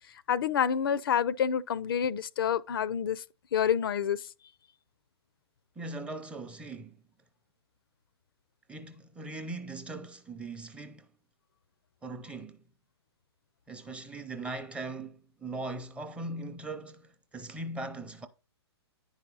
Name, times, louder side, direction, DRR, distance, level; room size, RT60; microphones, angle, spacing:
voice 1, 0.3-3.2 3.5-4.2, left 8 dB, 55° left, 0.4 m, -28 dB
voice 2, 5.8-7.0 8.7-11.1 12.0-12.6 13.7-18.3, right 2 dB, 10° right, 0.6 m, -40 dB
9.7 x 4.8 x 3.9 m
figure-of-eight pair, 120°, 14 cm